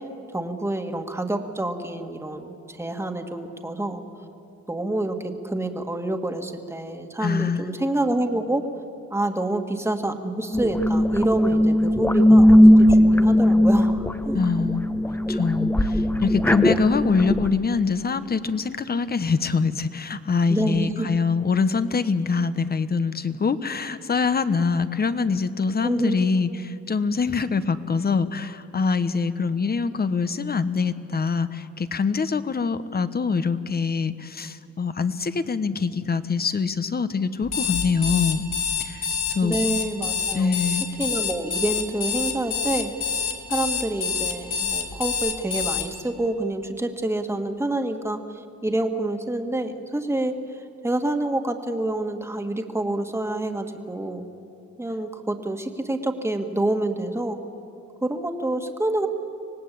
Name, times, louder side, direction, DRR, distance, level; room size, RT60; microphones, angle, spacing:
voice 1, 0.3-4.0 4.7-8.7 9.1-14.4 20.5-21.2 25.8-26.2 39.4-40.6 41.0-42.9 43.5-50.3 50.8-54.3 54.8-57.4 58.0-59.1, right 1 dB, 10° right, 5 dB, 1.9 m, -27 dB
voice 2, 7.2-7.7 14.3-14.9 15.3-38.4 38.8-39.5 40.3-40.8, left 5 dB, 30° left, 12 dB, 1.1 m, -24 dB
sound 1, 10.5-17.5, equal, 5° left, 1.1 m, -18 dB
Alarm, 37.4-45.8, left 6 dB, 65° left, 4.0 m, -26 dB
25.5 x 18.5 x 8.5 m, 2.7 s
cardioid pair, 90°, 30 cm